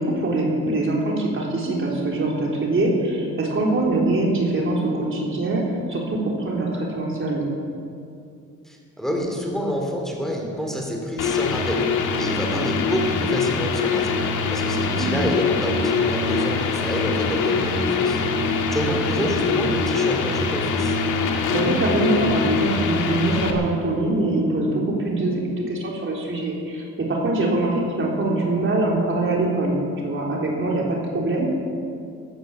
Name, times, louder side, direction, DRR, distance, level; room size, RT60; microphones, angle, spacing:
voice 1, 0.0-7.5 12.5-12.7 14.9-15.2 21.5-29.8 30.0-31.5, right 2 dB, 40° right, -2 dB, 3.8 m, -23 dB
voice 2, 8.6-14.2 14.5-18.2 18.7-21.0, equal, ahead, 0 dB, 3.9 m, -28 dB
sound 1, 11.2-23.5, left 4 dB, 70° left, 2.0 m, -23 dB
15.5 x 11.5 x 7.4 m, 2.4 s
supercardioid pair, 65°, 31 cm